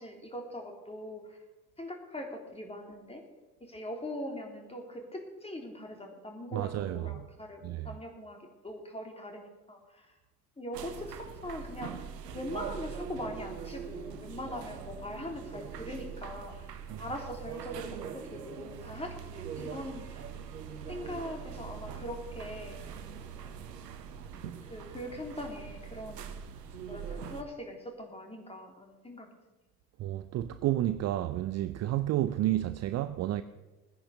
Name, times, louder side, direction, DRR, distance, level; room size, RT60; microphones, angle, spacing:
voice 1, 0.0-1.4 1.8-3.2 3.6-10.2 10.6-20.3 20.9-23.0 23.4-23.5 24.6-26.4 26.8-29.3, left 1 dB, 10° left, 3.4 m, -42 dB
voice 2, 6.5-7.2 7.6-7.9 16.9-17.0 30.0-33.4, right 13 dB, 35° right, 0.6 m, -31 dB
sound 1, 10.7-27.4, right 7 dB, 75° right, 1.2 m, -42 dB
18.0 x 10.0 x 6.8 m
figure-of-eight pair, 65°, 48 cm